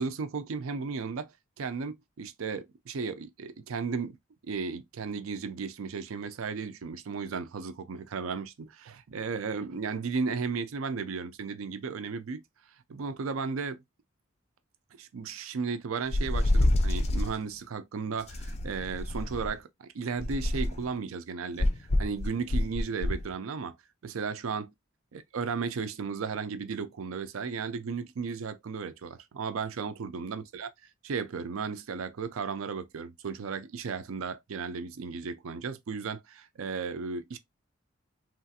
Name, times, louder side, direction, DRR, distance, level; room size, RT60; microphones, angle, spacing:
voice 1, 0.0-4.2 4.4-12.4 12.9-13.8 15.0-23.8 24.0-24.7 25.1-30.7 31.0-37.4, right 5 dB, 85° right, 0.4 m, -35 dB
sound 1, 16.1-17.4 18.3-19.5 20.2-20.9 21.6-23.2, left 1 dB, 30° left, 0.4 m, -27 dB
3.1 x 2.4 x 2.6 m
head